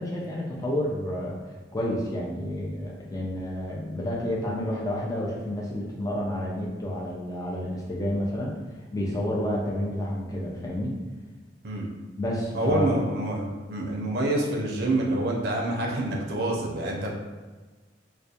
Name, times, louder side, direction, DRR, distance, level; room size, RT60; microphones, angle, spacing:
voice 1, 0.0-1.4 1.7-8.5 8.9-11.0 12.2-12.9, left 1 dB, 20° left, -4 dB, 0.3 m, -30 dB
voice 2, 12.5-17.1, right 1 dB, 55° right, -1 dB, 0.5 m, -27 dB
2.3 x 2.1 x 2.7 m, 1.3 s
head